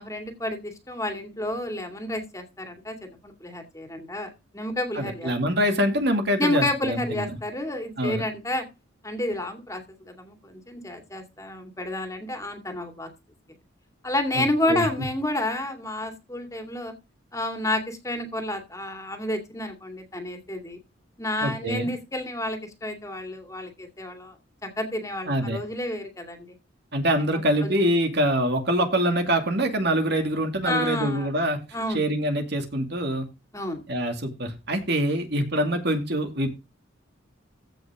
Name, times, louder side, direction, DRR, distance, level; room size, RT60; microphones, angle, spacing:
voice 1, 0.0-3.0 3.2-5.3 6.4-8.7 9.0-9.8 10.1-13.1 14.0-16.9 17.3-20.8 21.2-24.3 24.6-26.4 27.6-27.7 30.6-31.3 31.7-32.0 33.5-33.8, left 1 dB, 15° left, 5 dB, 2.5 m, -30 dB
voice 2, 4.9-7.2 8.0-8.2 14.3-14.9 21.4-21.9 25.3-25.6 26.9-31.6 31.9-33.3 33.9-36.5, equal, 55° right, 5 dB, 2.4 m, -25 dB
15.5 x 6.0 x 3.7 m, 0.26 s
head